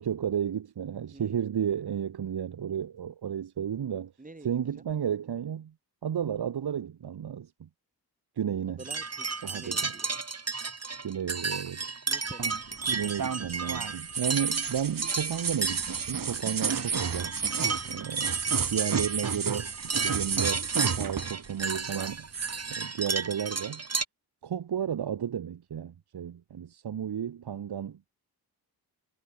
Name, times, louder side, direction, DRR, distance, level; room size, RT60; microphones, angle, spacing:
voice 1, 0.0-4.1 4.4-5.7 6.0-7.7 8.4-8.8 9.4-9.9 11.0-11.9 12.9-17.3 17.8-18.4 18.7-22.3 22.7-23.8 24.4-28.0, right 9 dB, 75° right, 1.8 m, -33 dB
voice 2, 1.1-1.5 4.2-4.8 8.8-10.1 12.1-12.6 17.8-18.2, right 2 dB, 20° right, 2.8 m, -48 dB
sound 1, 8.8-24.0, right 4 dB, 40° right, 4.3 m, -33 dB
sound 2, 12.4-21.5 21.7-22.6, right 6 dB, 55° right, 3.4 m, -32 dB
wide cardioid pair, 105°, 39 cm